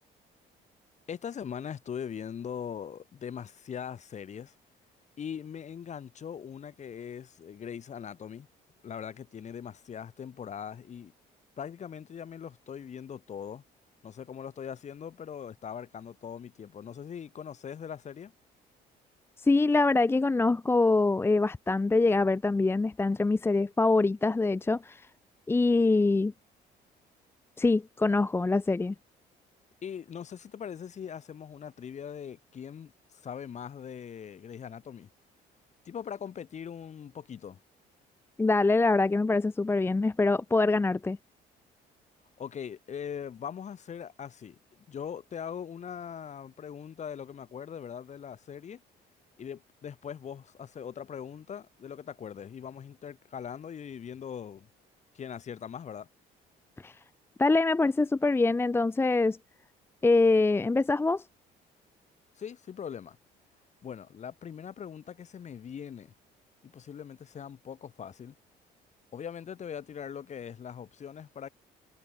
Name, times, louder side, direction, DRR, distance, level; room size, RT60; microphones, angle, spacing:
voice 1, 1.1-4.5 5.2-8.5 8.8-11.1 11.6-13.6 14.0-18.3 29.8-35.1 35.8-37.6 42.4-48.8 49.4-54.7 55.1-56.1 62.4-63.2 63.8-66.1 66.6-68.3 69.1-71.5, left 8 dB, 45° left, 4.4 m, -41 dB
voice 2, 19.4-25.1 25.5-26.3 27.6-28.9 38.4-41.2 56.8-56.9 57.4-59.4 60.0-61.2, left 3 dB, 15° left, 0.6 m, -24 dB
cardioid pair, 110°, 17 cm